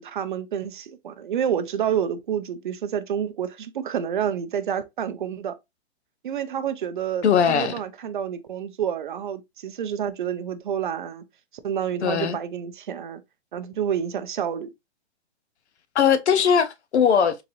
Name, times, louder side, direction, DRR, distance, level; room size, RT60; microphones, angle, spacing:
voice 1, 0.0-5.6 6.2-11.2 11.6-13.2 13.5-14.7, right 8 dB, 50° right, 0.4 m, -29 dB
voice 2, 7.2-7.7 12.0-12.4 15.9-17.3, left 7 dB, 85° left, 0.7 m, -20 dB
3.9 x 2.5 x 2.8 m
hypercardioid pair, 160°, 33 cm